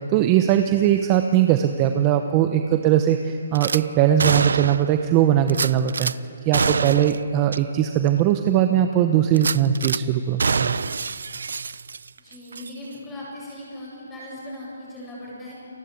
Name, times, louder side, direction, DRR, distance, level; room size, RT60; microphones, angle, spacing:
voice 1, 0.1-6.1 6.5-10.7, right 10 dB, 15° right, 7 dB, 0.9 m, -20 dB
Gunshot gunfire / Glass, 3.6-3.8 4.2-5.0 5.5-6.1 6.5-7.2 7.5-7.6 8.1-8.2 9.3-10.0 10.4-12.2 12.5-12.7, right 5 dB, 65° right, 0.7 m, -25 dB
voice 2, 12.2-15.5, left 1 dB, 10° left, -5 dB, 7.6 m, -38 dB
29.5 x 23.0 x 8.5 m, 2.5 s
hypercardioid pair, 170°, 0 cm